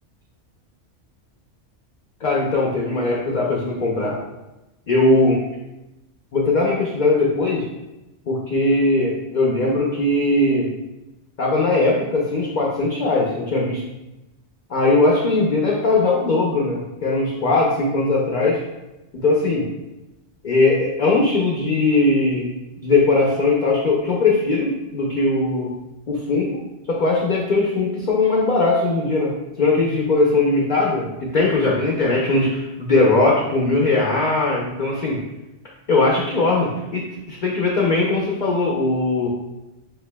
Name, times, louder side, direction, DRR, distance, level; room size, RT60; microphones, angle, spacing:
voice 1, 2.2-4.2 4.9-5.4 6.3-7.6 8.3-10.7 11.4-13.8 14.7-18.6 19.2-19.7 20.4-22.5 22.8-25.7 26.1-26.5 26.9-29.3 29.6-35.2 35.9-39.3, left 2 dB, 50° left, -3 dB, 0.7 m, -19 dB
7.4 x 2.5 x 2.2 m, 0.99 s
omnidirectional pair, 1.2 m